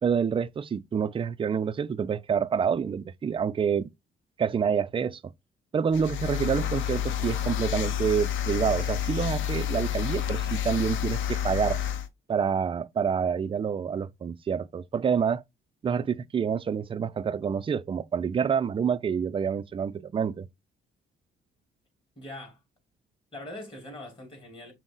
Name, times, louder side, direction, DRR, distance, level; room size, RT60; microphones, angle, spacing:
voice 1, 0.0-3.9 4.4-5.3 5.7-11.8 12.3-15.4 15.8-20.5, right 7 dB, 25° right, 0.4 m, -27 dB
sound 1, 5.9-12.1, left 10 dB, 75° left, 0.6 m, -29 dB
voice 2, 22.2-22.6 23.3-24.7, left 1 dB, 25° left, 2.9 m, -42 dB
6.0 x 2.1 x 3.8 m
cardioid pair, 90°, 20 cm